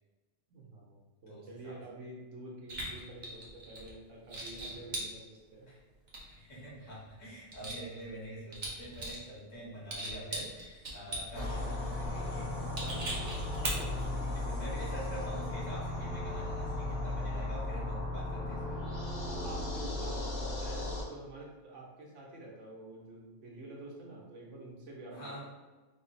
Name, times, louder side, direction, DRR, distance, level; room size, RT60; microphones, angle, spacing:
voice 1, 0.5-5.8 12.3-12.7 13.7-14.0 19.3-25.4, right 2 dB, 70° right, -2 dB, 1.1 m, -48 dB
voice 2, 1.3-1.8 5.7-5.8 6.4-12.5 12.9-13.1 13.9-18.8 25.1-25.4, right 1 dB, 75° left, -7 dB, 1.7 m, -46 dB
sound 1, 2.7-3.9 4.3-5.1 6.1-6.6 6.9-8.3 8.5-9.3 9.7-11.5 12.0-12.1 12.8-14.1, right 1 dB, 40° right, 0.8 m, -39 dB
sound 2, 11.3-21.0, left 2 dB, 55° left, 0.8 m, -36 dB
3.6 x 2.0 x 4.0 m, 1.2 s
omnidirectional pair, 1.3 m